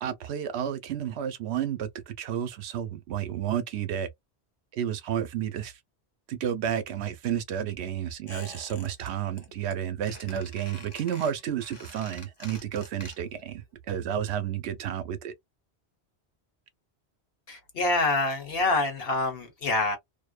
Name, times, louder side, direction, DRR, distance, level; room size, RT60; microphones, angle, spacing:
voice 1, 0.0-4.1 4.7-5.8 6.3-15.3, right 9 dB, 80° right, 0.9 m, -31 dB
Squeak, 8.3-9.1 9.4-9.7 10.1-13.5 13.7-13.8, left 1 dB, 25° left, 0.9 m, -46 dB
voice 2, 17.5-20.0, left 2 dB, 65° left, 1.1 m, -26 dB
2.6 x 2.1 x 2.3 m
omnidirectional pair, 1.1 m